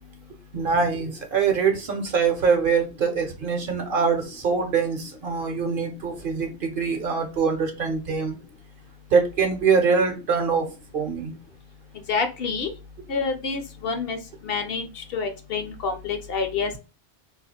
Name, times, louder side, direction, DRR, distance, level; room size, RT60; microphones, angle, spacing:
voice 1, 0.5-8.4 9.1-10.7 10.9-11.3, right 5 dB, 55° right, 4 dB, 0.8 m, -23 dB
voice 2, 12.1-12.7 13.1-14.2 14.4-16.8, left 5 dB, 65° left, 6 dB, 0.8 m, -28 dB
2.4 x 2.4 x 4.1 m, 0.30 s
omnidirectional pair, 1.1 m